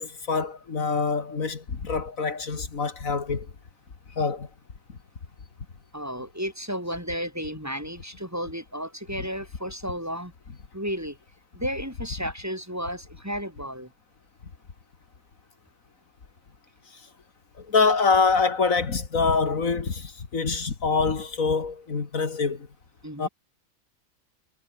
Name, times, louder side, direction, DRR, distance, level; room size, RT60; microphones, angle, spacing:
voice 1, 0.0-3.5 4.2-4.5 17.6-22.7 23.2-23.3, left 4 dB, 75° left, 2.6 m, -25 dB
voice 2, 5.9-10.3 10.7-11.2 11.5-13.9 23.0-23.3, equal, 10° right, 6.2 m, -33 dB
omnidirectional pair, 1.4 m